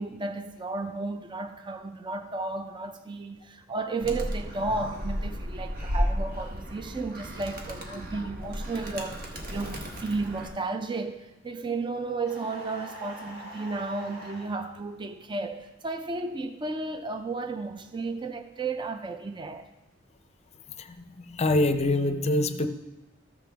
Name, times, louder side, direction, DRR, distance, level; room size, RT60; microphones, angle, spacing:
voice 1, 0.0-19.7, right 3 dB, 25° right, 0.4 m, -33 dB
Animal, 4.0-10.5, equal, 50° right, 1.1 m, -33 dB
sound 1, 12.2-14.5, equal, 80° right, 2.9 m, -43 dB
voice 2, 21.3-22.7, left 2 dB, 35° left, 0.5 m, -24 dB
13.5 x 6.7 x 3.4 m
head